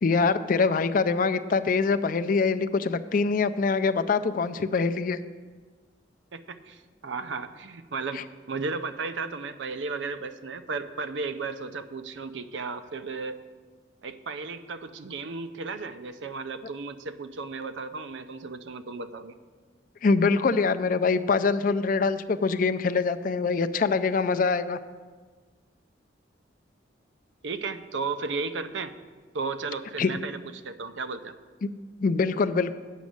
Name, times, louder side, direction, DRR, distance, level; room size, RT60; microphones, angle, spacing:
voice 1, 0.0-5.2 8.1-8.2 20.0-24.8 30.0-30.1 31.6-31.7 32.0-32.7, left 4 dB, 45° left, 10 dB, 0.4 m, -24 dB
voice 2, 6.3-13.4 14.0-19.3 27.4-28.9 29.3-31.3, right 4 dB, 85° right, 10 dB, 0.6 m, -34 dB
8.3 x 6.2 x 7.8 m, 1.4 s
head